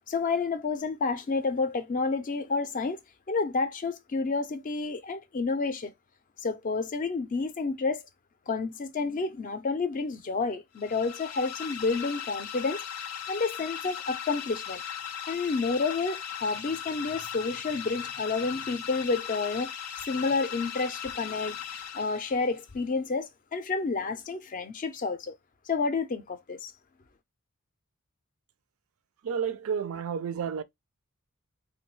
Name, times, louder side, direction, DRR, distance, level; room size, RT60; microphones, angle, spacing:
voice 1, 0.1-3.0 3.3-5.9 6.4-8.0 8.5-12.8 13.3-14.8 15.3-19.7 20.1-21.6 21.9-25.4 25.7-26.7, left 4 dB, 35° left, 0.4 m, -30 dB
sound 1, 10.8-22.6, left 9 dB, 85° left, 0.5 m, -38 dB
voice 2, 29.2-30.6, right 7 dB, 70° right, 0.4 m, -31 dB
2.9 x 2.2 x 3.1 m
head